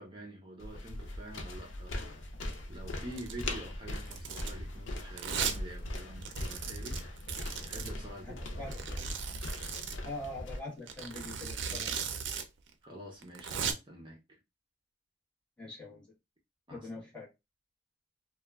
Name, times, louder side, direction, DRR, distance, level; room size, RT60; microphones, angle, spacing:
voice 1, 0.0-2.0 2.7-7.1 7.6-8.7 12.8-14.4 16.7-16.9, right 1 dB, 25° right, 0.6 m, -47 dB
sound 1, 0.6-10.6, left 1 dB, 85° left, 0.5 m, -40 dB
Domestic sounds home sounds, 3.1-3.4 3.9-4.6 5.2-5.6 5.9-6.0 6.2-7.9 8.7-10.0 10.9-12.4 12.7-12.8 13.2-13.7, right 7 dB, 75° right, 0.5 m, -37 dB
voice 2, 8.2-8.9 10.0-12.1 15.6-16.1 16.7-17.3, left 2 dB, 5° left, 1.1 m, -43 dB
2.8 x 2.2 x 2.3 m
head